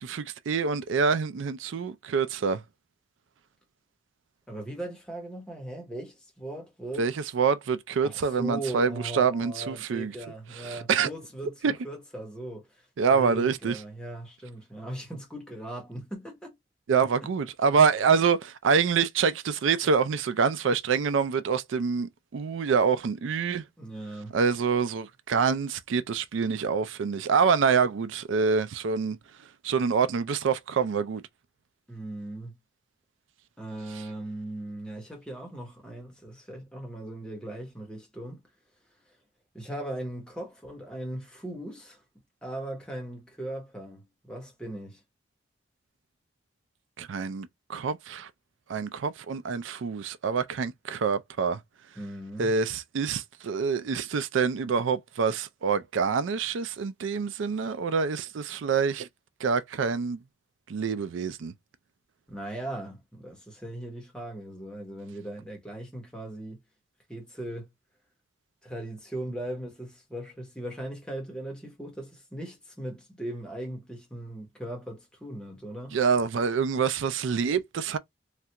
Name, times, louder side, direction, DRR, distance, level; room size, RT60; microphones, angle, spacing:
voice 1, 0.0-2.6 7.0-10.1 10.6-11.1 11.6-11.7 13.0-13.8 16.9-23.6 24.3-29.2 29.6-31.2 47.0-48.3 48.7-51.6 52.4-59.1 59.4-60.2 60.7-61.5 75.9-78.0, right 5 dB, 85° right, 0.4 m, -26 dB
voice 2, 4.5-7.1 8.0-12.8 13.1-16.5 23.8-24.4 31.9-32.5 33.6-38.4 39.5-42.0 42.4-45.0 51.9-52.5 62.3-66.6 67.1-67.7 68.6-76.0, right 1 dB, 5° left, 1.0 m, -38 dB
3.2 x 2.4 x 2.8 m
head